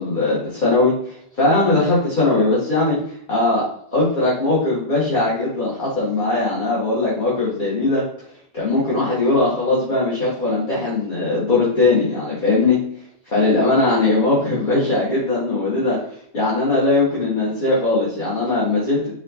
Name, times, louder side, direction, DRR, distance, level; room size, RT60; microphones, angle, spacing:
voice 1, 0.0-3.0 3.3-3.6 3.9-8.0 8.5-12.8 13.3-16.0 16.3-19.1, left 2 dB, 50° left, -7 dB, 1.4 m, -19 dB
5.0 x 2.4 x 4.0 m, 0.66 s
omnidirectional pair, 1.1 m